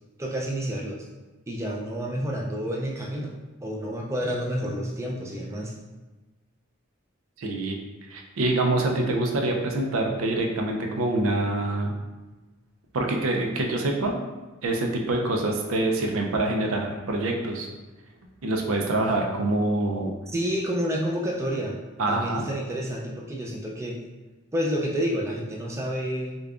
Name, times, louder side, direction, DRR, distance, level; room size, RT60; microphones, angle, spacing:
voice 1, 0.2-1.1 1.5-3.3 3.6-5.7 20.3-21.8 22.1-24.0 24.5-26.4, equal, 15° right, -2 dB, 0.4 m, -29 dB
voice 2, 7.4-7.8 8.1-11.9 12.9-14.2 14.6-17.7 18.4-20.1 22.0-22.5, right 2 dB, 75° right, 2 dB, 0.5 m, -25 dB
5.0 x 2.3 x 2.4 m, 1.2 s
head